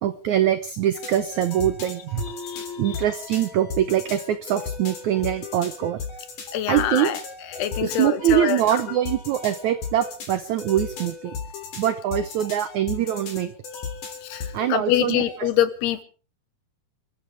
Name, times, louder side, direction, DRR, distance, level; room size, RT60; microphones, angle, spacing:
voice 1, 0.0-2.2 2.8-6.0 6.7-7.1 7.8-11.3 11.8-13.5 14.5-15.5, right 11 dB, 85° right, 11 dB, 1.6 m, -23 dB
sound 1, 0.9-15.4, left 5 dB, 55° left, 4.6 m, -36 dB
voice 2, 2.4-3.0 6.5-7.2 7.5-8.6 14.2-16.0, left 12 dB, 80° left, 12 dB, 3.3 m, -25 dB
28.0 x 14.0 x 3.5 m, 0.36 s
omnidirectional pair, 4.6 m